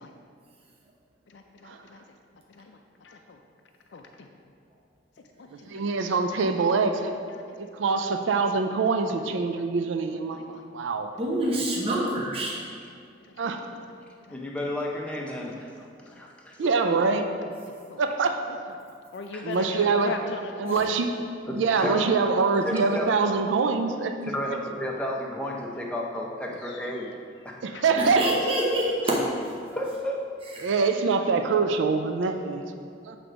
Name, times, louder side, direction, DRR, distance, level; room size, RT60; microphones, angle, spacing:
voice 1, 1.3-2.0 2.5-3.4 3.9-4.3 5.4-5.8 7.5-7.7 9.0-9.1 9.5-9.6 10.3-10.6 13.3-13.8 14.3-14.4 17.9-18.0 19.1-21.1 26.6-26.9 27.7-27.8, left 3 dB, 65° left, 3 dB, 0.4 m, -39 dB
voice 2, 5.7-7.2 7.6-11.1 11.5-11.6 13.4-13.7 16.6-17.3 18.0-18.5 19.4-20.2 20.6-21.1 21.5-24.3 27.6-28.3 30.6-32.7 33.1-33.2, right 4 dB, 80° right, 6 dB, 0.4 m, -24 dB
voice 3, 11.2-12.5 28.0-29.5 30.6-30.7, right 1 dB, 30° right, -3 dB, 0.7 m, -26 dB
voice 4, 14.3-16.7 19.3-19.4 21.5-22.0 22.6-23.1 24.2-27.1 27.4-27.7 29.7-30.3 30.7-30.8, left 1 dB, 5° left, -2 dB, 0.6 m, -32 dB
7.8 x 3.3 x 5.0 m, 2.3 s
head